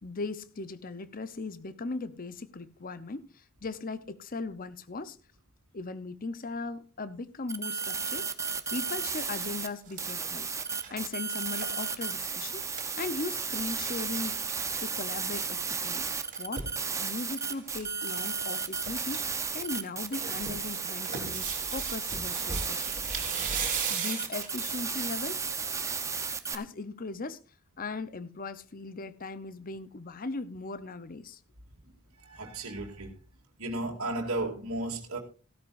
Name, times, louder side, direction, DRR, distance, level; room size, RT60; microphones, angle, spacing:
voice 1, 0.0-5.2 5.7-8.3 8.7-10.5 10.9-12.6 13.0-14.4 14.8-16.1 16.4-16.7 17.0-19.2 19.5-23.0 23.9-25.4 26.5-27.4 27.8-31.4, left 3 dB, 40° left, 0.8 m, -38 dB
sound 1, 7.5-9.7 10.0-26.5, right 5 dB, 15° right, 0.8 m, -34 dB
sound 2, 9.7-13.7 14.1-14.2 14.3-14.6 15.8-16.8 17.4-17.9 18.1-18.2 18.6-19.2 19.6-24.8 25.3-25.4, right 6 dB, 35° right, 3.6 m, -37 dB
voice 2, 32.2-33.1 33.6-35.2, right 2 dB, 70° right, 2.5 m, -34 dB
16.0 x 12.5 x 2.6 m
head